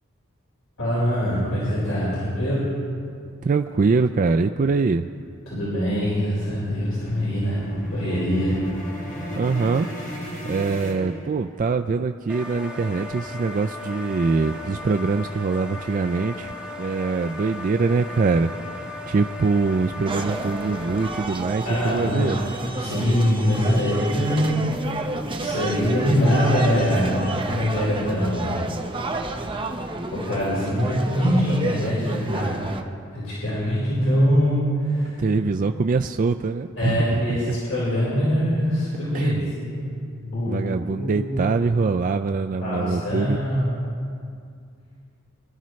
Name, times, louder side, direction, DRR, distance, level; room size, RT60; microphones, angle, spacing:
voice 1, 0.8-2.7 5.5-7.6 7.9-8.6 21.6-22.3 22.8-24.6 24.9-25.0 25.4-28.7 30.1-32.6 33.1-35.2 36.8-39.9 40.2-41.4 42.6-43.7, equal, 75° left, -8 dB, 4.6 m, -23 dB
voice 2, 3.4-5.0 9.4-9.9 10.4-16.5 16.8-18.5 19.1-22.4 35.2-37.6 39.1-39.5 40.5-43.4, right 4 dB, 40° right, 6 dB, 0.4 m, -23 dB
sound 1, 5.2-11.7, equal, 40° left, 3.7 m, -36 dB
sound 2, 12.3-21.2, left 2 dB, 5° right, 1.5 m, -36 dB
sound 3, 20.1-32.8, right 2 dB, 25° right, 0.9 m, -31 dB
25.0 x 13.0 x 3.2 m, 2.3 s
head